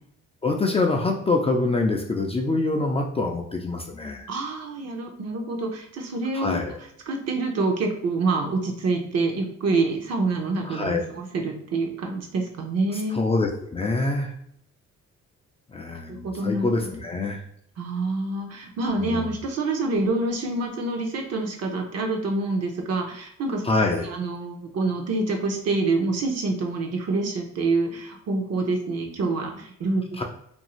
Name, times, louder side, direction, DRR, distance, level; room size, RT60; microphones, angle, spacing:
voice 1, 0.4-4.3 6.3-6.8 10.6-11.0 12.9-14.3 15.7-17.4 19.0-19.4 23.6-24.1 30.2-30.3, left 3 dB, 20° left, 1 dB, 0.3 m, -25 dB
voice 2, 4.3-6.6 7.1-13.2 15.9-16.7 17.8-23.6 24.0-30.0, right 3 dB, 55° right, 2 dB, 0.7 m, -26 dB
2.5 x 2.4 x 3.0 m, 0.70 s
cardioid pair, 90°, 30 cm